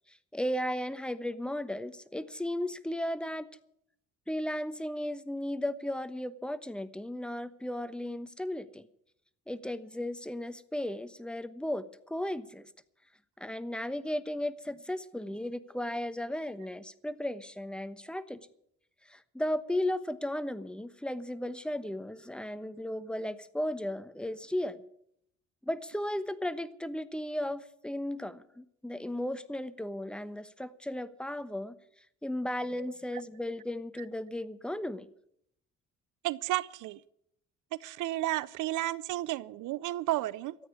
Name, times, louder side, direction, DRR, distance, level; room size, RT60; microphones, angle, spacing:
voice 1, 0.1-3.5 4.3-8.8 9.5-12.6 13.4-18.4 19.1-24.8 25.6-31.8 32.2-35.1, left 1 dB, 5° left, 12 dB, 1.1 m, -35 dB
voice 2, 36.2-37.0 37.8-40.6, right 15 dB, 85° right, 20 dB, 0.6 m, -32 dB
13.5 x 9.1 x 9.7 m, 0.72 s
cardioid pair, 90°, 30 cm